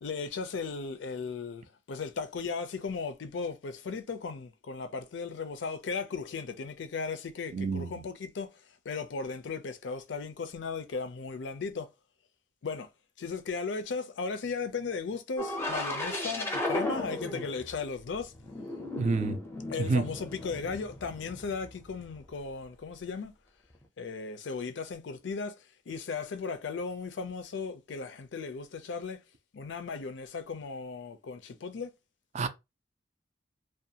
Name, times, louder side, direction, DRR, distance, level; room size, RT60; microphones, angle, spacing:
voice 1, 0.0-8.5 8.9-11.9 12.6-12.9 13.2-18.3 19.7-23.3 24.0-25.5 25.9-29.2 29.5-31.9, left 4 dB, 75° left, 0.4 m, -36 dB
voice 2, 7.5-8.0 19.0-19.4 19.8-20.1 32.3-32.5, right 4 dB, 40° right, 0.3 m, -28 dB
sound 1, 15.4-17.8 18.2-22.1 23.8-23.9, left 1 dB, 15° left, 0.5 m, -35 dB
2.5 x 2.2 x 2.7 m
head